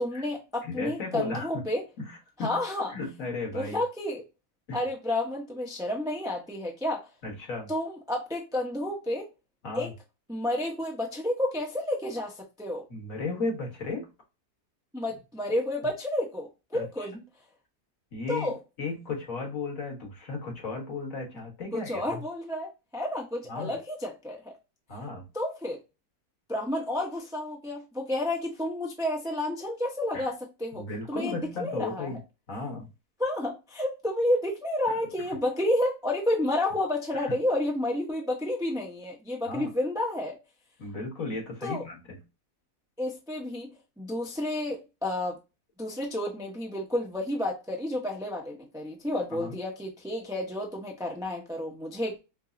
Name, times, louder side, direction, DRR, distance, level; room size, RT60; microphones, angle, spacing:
voice 1, 0.0-1.8 2.4-2.9 3.5-4.2 4.7-7.1 7.7-9.3 9.7-9.9 10.3-12.8 14.9-17.2 18.3-18.6 21.7-24.5 25.3-25.8 26.5-32.1 33.2-40.4 41.6-41.8 43.0-43.7 44.0-45.4 45.8-52.2, left 1 dB, 5° right, 0.4 m, -30 dB
voice 2, 0.6-1.6 2.0-2.6 2.9-3.8 4.7-4.8 7.2-7.7 9.6-9.9 12.9-14.1 16.7-17.2 18.1-22.2 23.5-23.8 24.9-25.3 30.1-30.3 30.7-32.2 32.5-32.9 34.9-35.0 35.3-35.4 37.1-37.4 39.5-39.7 40.8-42.2 49.3-49.6, left 3 dB, 60° left, 1.7 m, -35 dB
5.2 x 2.0 x 2.5 m
omnidirectional pair, 1.6 m